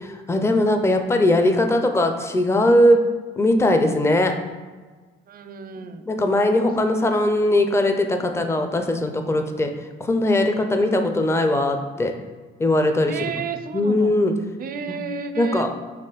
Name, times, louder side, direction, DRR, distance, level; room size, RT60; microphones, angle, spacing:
voice 1, 0.3-3.0 3.4-4.3 5.8-9.7 10.0-12.1 12.6-13.1 13.7-14.3 15.4-15.7, left 1 dB, 15° left, 5 dB, 0.5 m, -20 dB
voice 2, 5.3-6.0 6.9-7.1 7.4-7.6 13.1-14.1 14.6-15.7, right 6 dB, 50° right, 9 dB, 0.4 m, -32 dB
4.2 x 3.0 x 4.0 m, 1.3 s
cardioid pair, 90°, 20 cm